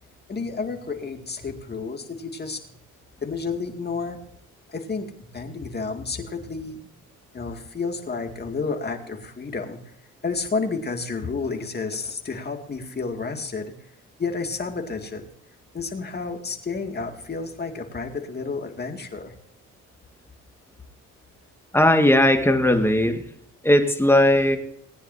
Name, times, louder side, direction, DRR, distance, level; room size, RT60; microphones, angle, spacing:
voice 1, 0.3-2.6 3.2-4.2 4.7-6.8 7.3-9.8 10.2-13.7 14.2-15.2 15.7-19.3, left 4 dB, 35° left, 4 dB, 2.3 m, -31 dB
voice 2, 21.7-23.2 23.6-24.6, left 1 dB, 10° left, 6 dB, 1.7 m, -18 dB
19.5 x 9.8 x 2.7 m, 0.70 s
cardioid pair, 90°, 30 cm